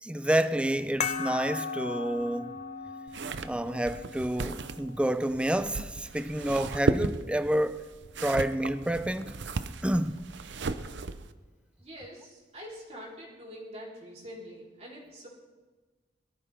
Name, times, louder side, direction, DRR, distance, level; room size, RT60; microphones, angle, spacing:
voice 1, 0.0-2.6 3.4-7.8 8.2-9.3 9.8-10.2, right 1 dB, 5° right, 0.5 m, -29 dB
sound 1, 1.0-6.1, left 5 dB, 40° left, 0.8 m, -38 dB
sound 2, 3.1-11.3, right 3 dB, 70° right, 0.6 m, -35 dB
voice 2, 11.8-15.3, equal, 35° right, 3.6 m, -45 dB
22.5 x 13.5 x 3.5 m
head